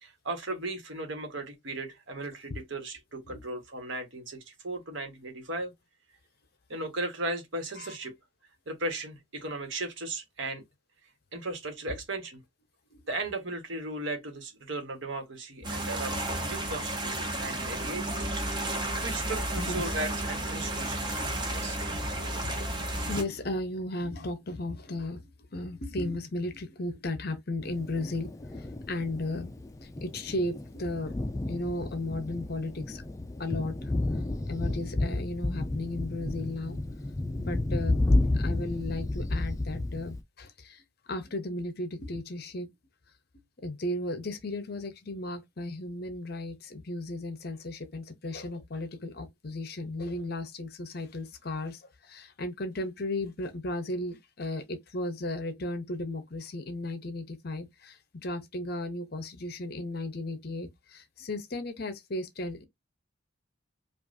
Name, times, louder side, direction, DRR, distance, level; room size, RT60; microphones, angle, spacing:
voice 1, 0.0-5.7 6.7-8.1 8.7-10.6 11.3-12.4 13.1-18.1 19.0-21.8, right 2 dB, 65° right, 1.2 m, -36 dB
sound 1, 15.6-23.2, right 1 dB, 20° right, 0.9 m, -32 dB
voice 2, 19.6-19.9 22.4-28.3 28.5-29.5 29.8-31.1 31.5-33.0 33.4-33.9 34.5-36.8 37.4-38.0 38.3-40.8 41.1-42.7 43.6-62.7, left 1 dB, 50° left, 0.7 m, -35 dB
Thunder, 27.6-40.2, left 2 dB, 15° left, 0.3 m, -31 dB
5.1 x 2.4 x 2.6 m
head